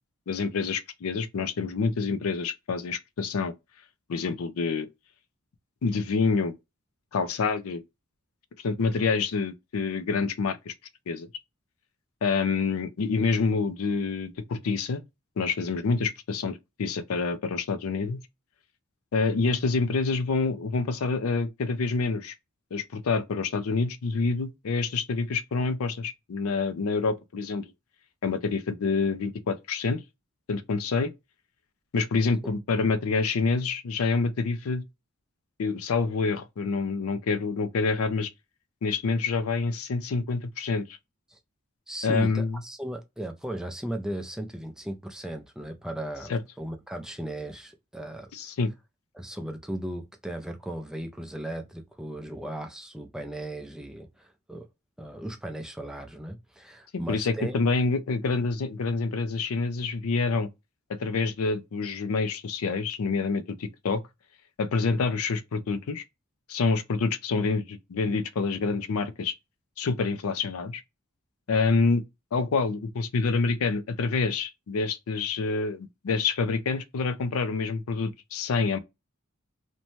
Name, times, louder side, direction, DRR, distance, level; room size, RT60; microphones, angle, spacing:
voice 1, 0.3-3.5 4.1-4.9 5.8-6.5 7.1-7.8 8.6-10.7 11.1-11.3 12.2-15.0 15.4-18.2 19.1-22.3 22.7-27.6 28.2-30.0 30.5-31.1 31.9-34.8 35.6-38.3 38.8-40.8 42.0-42.6 46.3-46.4 48.3-48.7 57.1-60.5 60.9-64.0 64.6-66.0 66.5-69.3 69.8-70.8 71.5-72.0 72.3-78.8, left 4 dB, 85° left, 0.4 m, -27 dB
voice 2, 41.9-46.3 46.6-48.5 49.1-54.6 55.0-57.6, right 1 dB, 5° right, 0.3 m, -36 dB
2.6 x 2.2 x 2.9 m
head